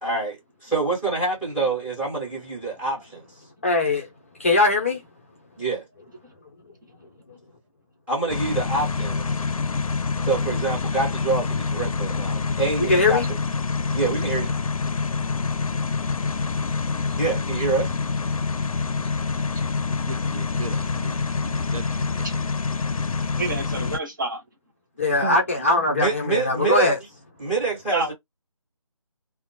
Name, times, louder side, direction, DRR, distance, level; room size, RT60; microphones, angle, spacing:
voice 1, 0.0-3.2 5.6-5.9 8.1-9.4 10.2-13.2 13.9-14.5 17.1-17.9 25.6-26.9 27.4-28.1, right 3 dB, 5° right, 1.2 m, -26 dB
voice 2, 3.6-4.1 4.4-5.0 12.9-13.3 25.0-27.0, left 2 dB, 25° left, 0.5 m, -20 dB
sound 1, 8.3-24.0, left 4 dB, 85° left, 0.4 m, -26 dB
voice 3, 20.1-22.2 25.2-25.4, right 3 dB, 80° right, 0.5 m, -36 dB
voice 4, 23.3-24.4 27.9-28.1, right 2 dB, 35° right, 0.7 m, -28 dB
2.8 x 2.1 x 2.6 m
figure-of-eight pair, 160°, 18 cm